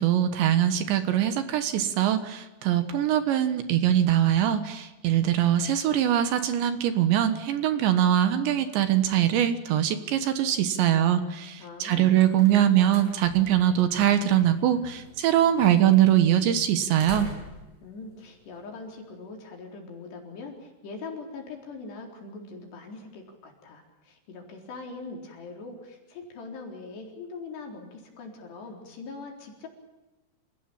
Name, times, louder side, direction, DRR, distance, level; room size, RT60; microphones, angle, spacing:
voice 1, 0.0-17.3, right 11 dB, 70° right, 10 dB, 3.4 m, -22 dB
voice 2, 11.6-12.2 17.8-29.7, left 3 dB, 60° left, 2 dB, 6.0 m, -42 dB
sound 1, 11.7-19.1, equal, 40° right, 7.5 m, -46 dB
29.0 x 17.5 x 8.9 m, 1.1 s
omnidirectional pair, 5.7 m